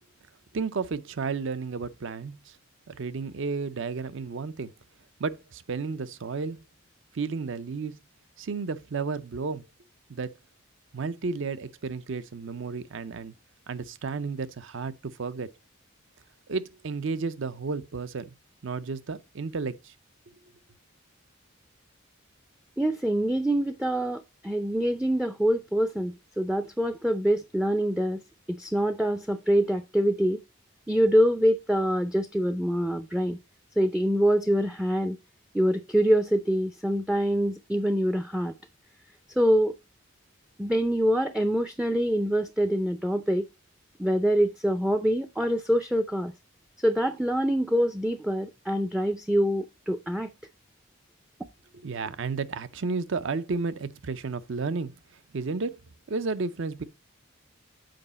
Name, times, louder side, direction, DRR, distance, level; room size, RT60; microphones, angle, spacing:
voice 1, 0.5-2.6 2.9-4.7 5.2-6.6 7.1-8.0 8.4-9.6 10.1-10.3 10.9-13.3 13.7-15.5 16.5-18.3 18.6-19.9 51.7-54.9 55.3-55.8 56.1-56.8, right 4 dB, 60° right, 0.5 m, -32 dB
voice 2, 22.8-28.2 28.5-30.4 30.9-33.4 33.8-35.2 35.5-38.5 39.4-39.7 40.6-43.5 44.0-46.3 46.8-50.3, equal, 5° right, 0.4 m, -25 dB
7.7 x 5.0 x 4.0 m
head